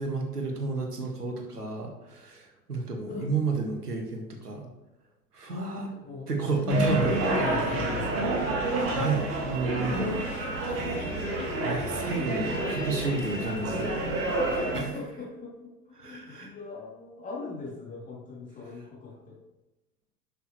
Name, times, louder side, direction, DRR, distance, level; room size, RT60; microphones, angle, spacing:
voice 1, 0.0-4.7 5.3-5.9 6.3-7.1 8.9-10.1 11.6-14.0 14.5-15.0 16.0-16.5, right 4 dB, 80° right, 2 dB, 2.0 m, -31 dB
voice 2, 5.9-6.3 6.6-8.6 9.9-10.9 14.6-15.7 16.0-19.4, left 3 dB, 15° left, -3 dB, 2.9 m, -37 dB
sound 1, 6.7-14.8, right 2 dB, 30° right, 2.1 m, -29 dB
11.0 x 6.5 x 3.2 m, 1.0 s
figure-of-eight pair, 100°, 46 cm